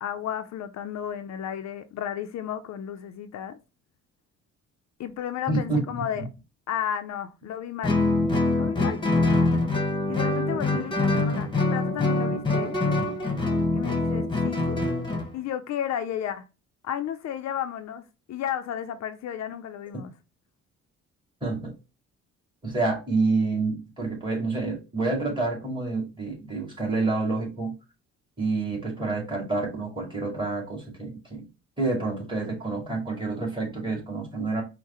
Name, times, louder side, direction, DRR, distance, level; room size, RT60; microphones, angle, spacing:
voice 1, 0.0-3.6 5.0-6.2 6.7-8.0 8.6-9.0 10.1-12.8 13.7-14.8 15.3-16.5 16.8-20.1, left 9 dB, 65° left, 0.5 m, -33 dB
voice 2, 5.5-5.8 6.1-6.2 21.4-21.7 22.6-27.8 28.4-31.5 31.8-34.6, right 3 dB, 15° right, 2.2 m, -28 dB
Guitar, 7.8-15.3, left 2 dB, 15° left, 1.1 m, -24 dB
4.7 x 2.1 x 4.2 m
cardioid pair, 90°, 30 cm